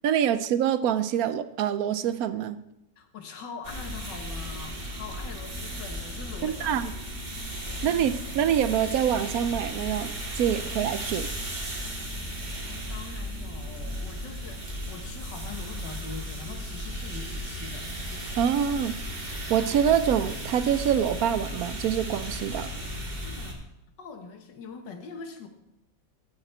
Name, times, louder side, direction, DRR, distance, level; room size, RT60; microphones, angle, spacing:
voice 1, 0.0-2.6 6.4-6.9 7.8-11.3 18.4-22.7, right 9 dB, 70° right, 12 dB, 0.9 m, -26 dB
voice 2, 3.0-7.1 12.7-17.9 22.6-23.6 24.0-25.5, left 5 dB, 85° left, 5 dB, 1.9 m, -43 dB
sound 1, 3.6-23.5, equal, 25° right, 1.8 m, -35 dB
16.5 x 5.9 x 4.4 m, 0.85 s
omnidirectional pair, 1.9 m